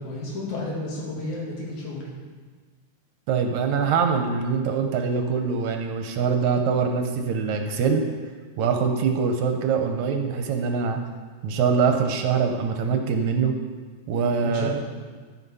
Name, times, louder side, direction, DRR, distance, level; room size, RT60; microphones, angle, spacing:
voice 1, 0.0-2.1 14.4-14.7, left 2 dB, 70° left, -5 dB, 3.6 m, -32 dB
voice 2, 3.3-8.0 8.6-11.0 11.4-13.5 14.1-14.7, right 6 dB, 75° right, 5 dB, 1.9 m, -23 dB
13.0 x 5.8 x 5.5 m, 1.5 s
omnidirectional pair, 3.5 m